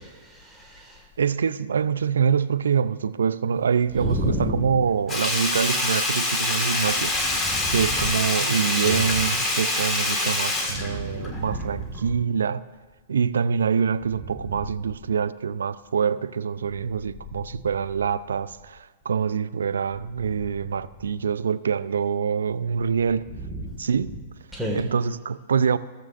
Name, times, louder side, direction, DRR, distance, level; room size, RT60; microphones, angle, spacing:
voice 1, 0.0-1.0 4.0-4.7 7.4-8.0 8.7-9.0 10.7-11.8 23.4-23.6 24.5-24.8, equal, ahead, -1 dB, 1.8 m, -31 dB
voice 2, 1.2-12.6 13.1-23.3 23.8-24.1 24.7-25.8, right 6 dB, 80° right, 16 dB, 0.4 m, -25 dB
Sink (filling or washing), 5.1-11.6 11.9-12.0, left 2 dB, 20° left, 1.7 m, -25 dB
17.0 x 7.5 x 2.5 m, 1.3 s
hypercardioid pair, 120°, 0 cm